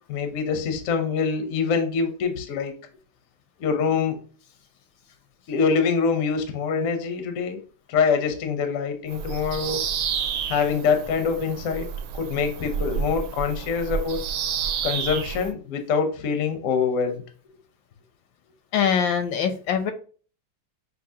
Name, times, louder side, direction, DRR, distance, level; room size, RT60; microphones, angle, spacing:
voice 1, 0.1-2.8 3.6-4.2 5.5-7.6 7.9-9.9 10.5-11.9 12.1-14.2 14.8-17.2, left 5 dB, 60° left, 6 dB, 0.8 m, -24 dB
Bird vocalization bird call bird song, 9.1-15.5, right 7 dB, 90° right, 1.4 m, -30 dB
voice 2, 18.7-19.9, left 7 dB, 80° left, 9 dB, 1.3 m, -23 dB
5.7 x 2.7 x 2.7 m, 0.40 s
omnidirectional pair, 2.1 m